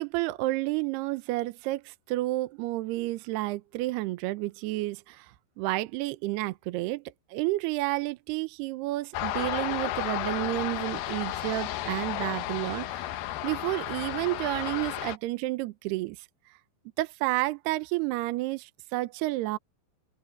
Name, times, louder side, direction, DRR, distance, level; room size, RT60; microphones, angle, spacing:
voice 1, 0.0-7.0 7.3-13.1 13.4-16.2 17.0-19.6, right 19 dB, 80° right, 2.4 m, -30 dB
sound 1, 9.1-15.2, left 13 dB, 85° left, 2.0 m, -33 dB
open air
omnidirectional pair, 5.5 m